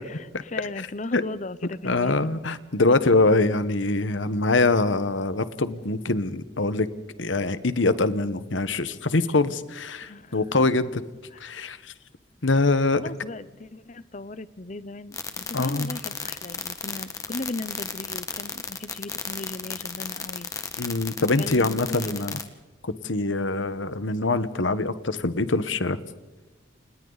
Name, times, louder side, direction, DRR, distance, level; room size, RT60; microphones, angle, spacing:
voice 1, 0.1-2.2 10.0-10.7 11.3-11.5 13.0-20.5 21.4-22.2 23.6-23.9, left 2 dB, 40° left, 17 dB, 0.7 m, -37 dB
voice 2, 1.8-6.9 7.2-10.9 11.4-11.9 12.4-13.0 15.5-16.0 20.8-22.4 22.8-26.0, left 2 dB, 80° left, 13 dB, 1.2 m, -24 dB
sound 1, 15.1-22.4, left 5 dB, 15° left, 1.5 m, -33 dB
29.5 x 28.0 x 4.1 m, 1.2 s
head